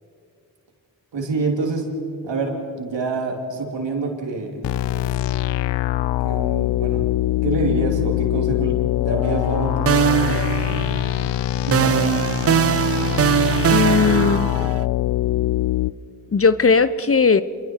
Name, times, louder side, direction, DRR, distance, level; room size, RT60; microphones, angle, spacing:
voice 1, 1.1-1.9 2.2-4.7 6.2-7.1 7.4-11.0 11.7-12.2, right 3 dB, 80° right, 2 dB, 3.0 m, -27 dB
sound 1, 4.6-15.9, left 14 dB, 75° left, 0.6 m, -23 dB
sound 2, 9.2-9.6 9.9-11.3 11.7-14.8, right 9 dB, 35° right, 0.4 m, -21 dB
voice 2, 13.7-14.5 16.3-17.4, left 5 dB, 35° left, 14 dB, 0.7 m, -17 dB
26.5 x 22.0 x 4.5 m, 2.6 s
cardioid pair, 50°, 43 cm